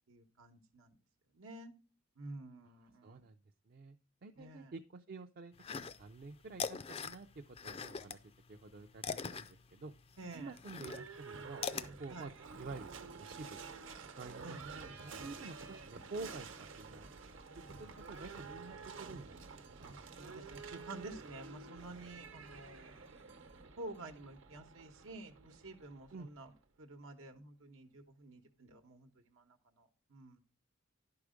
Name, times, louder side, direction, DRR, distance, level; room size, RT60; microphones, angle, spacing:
voice 1, 0.1-1.0 1.3-1.7 2.2-3.3 4.4-4.7 10.2-10.6 12.1-12.3 14.4-14.6 20.1-23.0 23.8-26.5 26.8-30.4, right 2 dB, 90° right, 4 dB, 1.0 m, -50 dB
voice 2, 3.0-3.4 3.7-4.0 4.2-9.9 10.3-11.6 12.0-17.2 17.5-19.9 26.1-26.3, right 3 dB, 50° right, 4 dB, 0.5 m, -50 dB
sound 1, 5.6-6.2 6.5-8.2 8.5-11.9, left 6 dB, 30° left, 0.4 m, -41 dB
Livestock farm animals working animals / Bell, 10.7-26.6, right 4 dB, 70° right, 1.0 m, -50 dB
11.0 x 4.8 x 5.0 m, 0.36 s
head